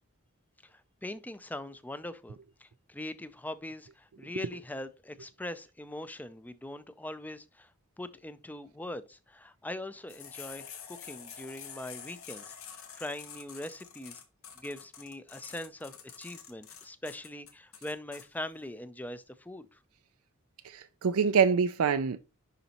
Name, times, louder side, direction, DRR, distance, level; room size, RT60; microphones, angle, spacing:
voice 1, 0.6-7.7 8.0-14.2 14.6-19.8, left 1 dB, 10° left, 0.5 m, -42 dB
sound 1, 10.1-18.2, left 8 dB, 75° left, 1.4 m, -47 dB
voice 2, 20.6-22.2, right 6 dB, 90° right, 0.4 m, -25 dB
10.5 x 4.0 x 2.9 m
head